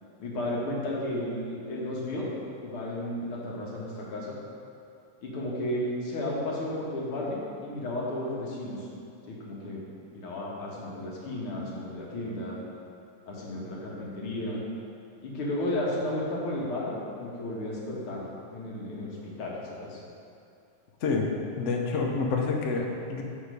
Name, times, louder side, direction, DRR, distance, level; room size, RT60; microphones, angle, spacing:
voice 1, 0.2-2.3 2.6-4.4 5.2-8.9 9.3-9.8 10.1-12.6 13.3-14.6 15.2-18.2 18.5-20.0 21.9-22.1, left 1 dB, 90° left, -4 dB, 2.2 m, -33 dB
voice 2, 21.6-23.2, left 4 dB, 70° left, 1 dB, 0.7 m, -28 dB
6.5 x 5.3 x 5.2 m, 2.6 s
omnidirectional pair, 2.3 m